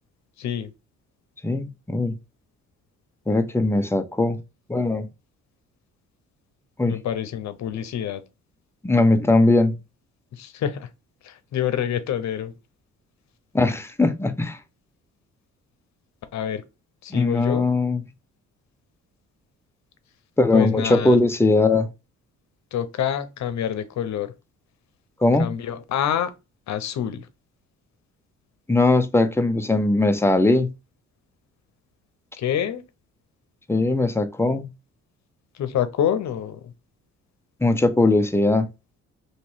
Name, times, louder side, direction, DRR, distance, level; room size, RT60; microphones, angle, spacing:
voice 1, 0.4-0.7 6.8-8.2 10.3-10.9 11.2-12.5 16.3-16.6 17.0-17.7 20.5-21.2 22.7-24.3 25.4-26.3 26.7-27.3 32.4-32.8 35.5-36.7, left 9 dB, 65° left, 0.8 m, -27 dB
voice 2, 1.4-2.2 3.3-4.4 4.7-5.1 6.8-7.0 8.8-9.8 13.5-14.6 17.1-18.0 20.4-21.9 25.2-25.5 28.7-30.7 33.7-34.7 37.6-38.7, left 2 dB, 10° left, 0.6 m, -20 dB
3.1 x 3.0 x 4.4 m
cardioid pair, 90°, 30 cm